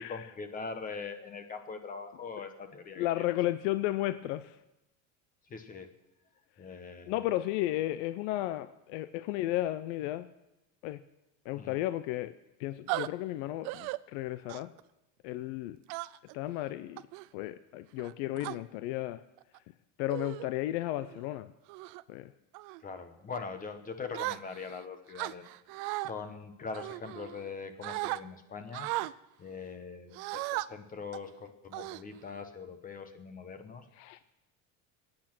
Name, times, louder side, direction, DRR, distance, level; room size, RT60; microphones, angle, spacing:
voice 1, 0.0-3.4 5.5-5.9 6.6-7.2 11.5-11.8 22.8-25.5 26.0-28.9 29.4-33.8, left 5 dB, 20° left, 8 dB, 1.0 m, -42 dB
voice 2, 3.0-4.5 7.1-10.3 10.8-11.0 11.5-12.3 12.6-14.7 15.2-15.8 16.3-17.0 17.3-19.2 20.0-21.5 22.1-22.3 34.0-34.2, left 15 dB, 65° left, 12 dB, 0.6 m, -33 dB
sound 1, 12.9-13.1 13.6-14.0 14.5-14.8 15.9-16.3 17.0-17.3 18.0-18.6 19.4-19.6 20.1-20.5 20.9-21.2 21.7-22.0 22.5-22.8 24.1-24.8 25.1-26.1 26.7-27.5 27.8-28.2 28.7-29.1 30.1-30.7 31.1-31.3 31.7-32.4, right 19 dB, 55° right, 0.5 m, -36 dB
22.0 x 8.9 x 6.0 m, 0.95 s
cardioid pair, 160°, 39 cm